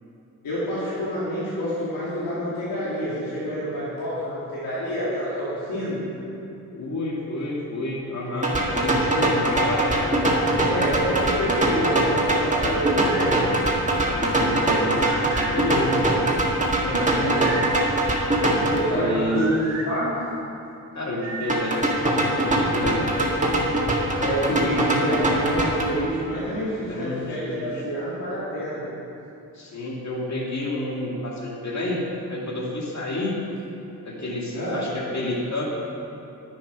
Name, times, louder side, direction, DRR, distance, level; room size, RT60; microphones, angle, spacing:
voice 1, 0.4-6.0 10.6-13.5 16.8-17.4 18.7-19.5 19.9-20.2 24.2-28.8 34.5-34.8, equal, 80° left, -11 dB, 2.7 m, -28 dB
voice 2, 6.7-10.1 10.4-10.8 14.0-16.2 16.8-17.4 18.5-19.4 20.9-23.2 26.9-27.8 29.5-32.0 32.3-33.4 34.0-35.6, left 1 dB, 50° left, -3 dB, 2.4 m, -30 dB
sound 1, 8.4-18.8 21.5-25.8, right 1 dB, 20° right, 2.0 m, -22 dB
sound 2, 12.6-13.4 14.7-15.6 16.9-17.8 18.9-19.9 21.2-22.1, right 3 dB, 50° right, 2.3 m, -35 dB
9.9 x 7.4 x 6.0 m, 2.9 s
cardioid pair, 50°, 35 cm